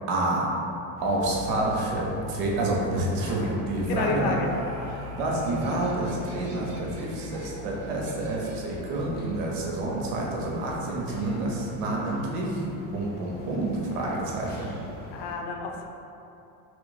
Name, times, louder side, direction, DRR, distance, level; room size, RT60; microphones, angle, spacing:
voice 1, 0.1-0.5 1.0-4.4 4.9-12.6 12.9-14.7, right 2 dB, 85° right, -2 dB, 0.9 m, -28 dB
sound 1, 1.0-15.3, left 1 dB, 25° left, 0.5 m, -45 dB
sound 2, 1.2-11.6, left 6 dB, 25° right, 0.6 m, -44 dB
voice 2, 3.9-4.5 15.1-15.9, left 4 dB, 70° left, 3 dB, 0.6 m, -30 dB
Laughter, 4.0-9.1, equal, 50° right, 0.9 m, -44 dB
3.1 x 2.4 x 3.9 m, 2.8 s
supercardioid pair, 110°, 42 cm